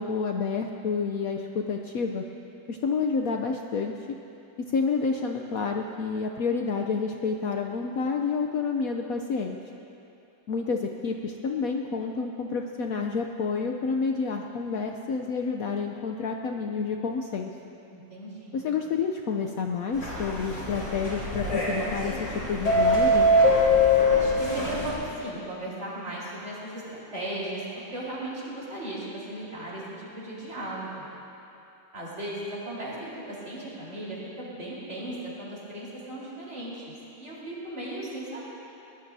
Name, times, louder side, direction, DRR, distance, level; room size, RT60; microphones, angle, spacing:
voice 1, 0.0-2.2 2.7-4.0 4.6-9.6 10.5-17.5 18.5-22.2 22.5-23.3, left 5 dB, 65° left, 3 dB, 1.0 m, -29 dB
voice 2, 17.9-18.6 24.1-27.6 27.9-31.1 31.9-38.4, right 1 dB, 40° right, -7 dB, 4.4 m, -37 dB
sound 1, 19.9-24.9, left 1 dB, 85° left, 4.5 m, -23 dB
22.0 x 19.0 x 2.7 m, 2.8 s
omnidirectional pair, 1.9 m